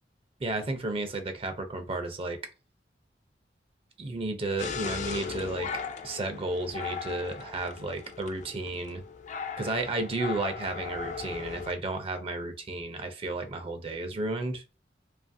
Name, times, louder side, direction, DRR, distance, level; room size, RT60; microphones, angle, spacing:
voice 1, 0.4-2.4 4.0-5.7 6.0-9.0 9.6-14.6, right 2 dB, 30° right, 7 dB, 0.4 m, -33 dB
sound 1, 4.6-11.7, left 6 dB, 40° left, 0.3 m, -38 dB
2.7 x 2.4 x 2.5 m, 0.32 s
head